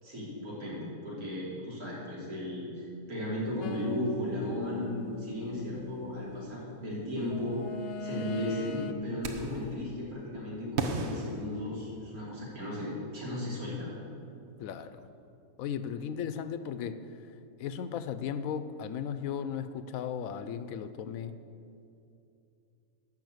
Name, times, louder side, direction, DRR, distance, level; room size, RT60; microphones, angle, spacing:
voice 1, 0.0-7.6 8.0-13.9, left 1 dB, 85° right, -7 dB, 3.7 m, -35 dB
sound 1, 3.6-6.6 7.3-8.9, left 3 dB, 55° left, 0.7 m, -40 dB
sound 2, 9.2-9.7 10.8-12.3, right 4 dB, 55° right, 1.1 m, -35 dB
voice 2, 14.6-15.0 15.6-17.0 17.6-21.4, left 8 dB, 75° left, 11 dB, 1.0 m, -36 dB
12.0 x 5.7 x 7.8 m, 2.6 s
omnidirectional pair, 1.5 m